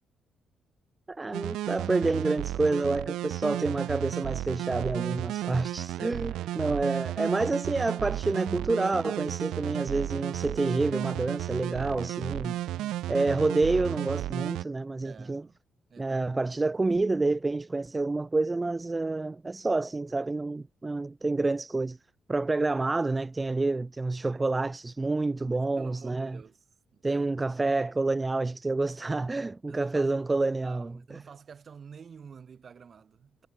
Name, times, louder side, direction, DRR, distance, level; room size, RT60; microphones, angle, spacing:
voice 1, 1.1-12.6 13.1-15.4 16.0-22.0 22.3-26.4 27.0-31.0, right 3 dB, 20° right, 0.5 m, -28 dB
sound 1, 1.3-14.6, right 14 dB, 85° right, 0.4 m, -33 dB
voice 2, 6.3-6.9 12.6-13.3 15.0-15.6 15.9-16.2 24.2-24.4 25.4-26.6 26.9-27.3 29.7-30.2 30.6-33.5, right 6 dB, 45° right, 5.9 m, -49 dB
cardioid pair, 90°, 0 cm